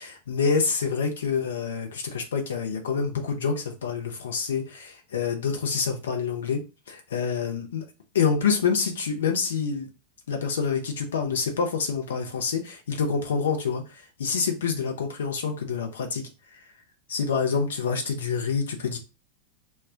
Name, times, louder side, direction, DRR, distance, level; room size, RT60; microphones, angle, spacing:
voice 1, 0.3-6.6 6.9-7.8 8.1-9.9 10.3-16.3 17.1-19.0, left 5 dB, 65° left, 3 dB, 0.5 m, -27 dB
2.2 x 2.1 x 3.5 m, 0.30 s
figure-of-eight pair, 90°, 0 cm